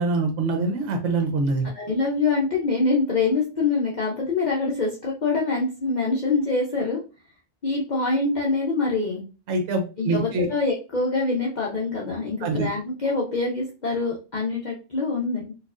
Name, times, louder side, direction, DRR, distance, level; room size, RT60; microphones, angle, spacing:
voice 1, 0.0-1.7 9.5-10.5 12.4-12.7, right 3 dB, 70° right, 4 dB, 0.9 m, -24 dB
voice 2, 1.7-7.0 7.6-9.2 10.0-15.4, left 3 dB, 45° left, -3 dB, 0.6 m, -25 dB
4.4 x 2.4 x 2.4 m, 0.32 s
omnidirectional pair, 1.3 m